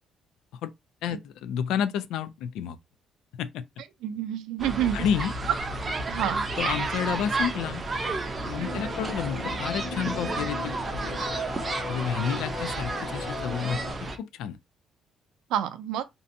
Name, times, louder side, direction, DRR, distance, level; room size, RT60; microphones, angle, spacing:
voice 1, 1.0-2.8 3.4-3.6 4.9-5.3 6.6-7.8 8.4-10.8 11.9-13.8 14.2-14.6, left 8 dB, 85° left, 0.3 m, -30 dB
voice 2, 4.0-5.1 6.1-6.4 8.6-8.9 15.5-16.0, right 10 dB, 85° right, 0.4 m, -29 dB
sound 1, 4.6-14.2, right 3 dB, 20° right, 0.4 m, -31 dB
sound 2, 8.5-13.9, left 3 dB, 35° left, 1.1 m, -37 dB
2.6 x 2.2 x 2.6 m
cardioid pair, 180°, 0 cm